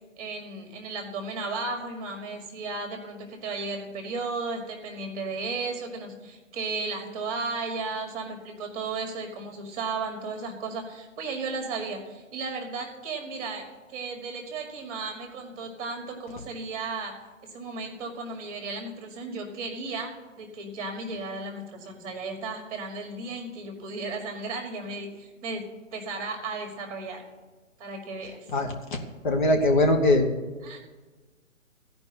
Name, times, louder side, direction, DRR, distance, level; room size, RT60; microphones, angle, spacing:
voice 1, 0.2-17.1 17.5-25.6 25.9-27.2 27.8-28.5 30.6-30.8, right 3 dB, 25° right, 4 dB, 1.9 m, -34 dB
voice 2, 28.5-30.3, left 1 dB, 35° left, 3 dB, 1.2 m, -22 dB
14.5 x 5.3 x 9.4 m, 1.3 s
figure-of-eight pair, 135°, 40 cm